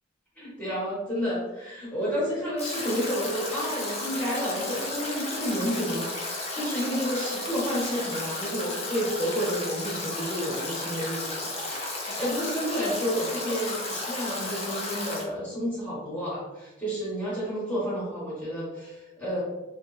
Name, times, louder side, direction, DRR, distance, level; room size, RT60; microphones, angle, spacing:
voice 1, 0.4-19.4, equal, 10° left, -9 dB, 1.1 m, -30 dB
Stream / Drip / Trickle dribble, 2.6-15.2, left 2 dB, 30° left, 0.4 m, -33 dB
3.1 x 2.0 x 2.5 m, 1.1 s
head